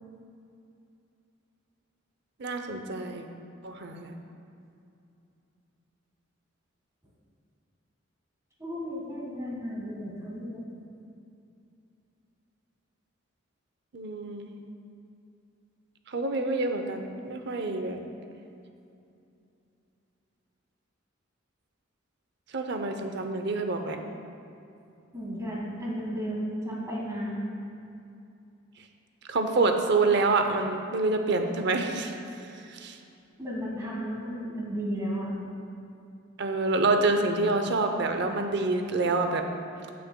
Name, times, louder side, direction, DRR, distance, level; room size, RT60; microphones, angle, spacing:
voice 1, 2.4-3.2 3.6-4.2 13.9-14.6 16.1-18.0 22.5-24.0 29.3-33.0 36.4-39.5, right 3 dB, 60° right, 5 dB, 0.7 m, -27 dB
voice 2, 8.6-10.6 25.1-27.4 33.4-35.3, equal, 15° right, -5 dB, 1.6 m, -34 dB
15.5 x 5.9 x 2.2 m, 2.6 s
head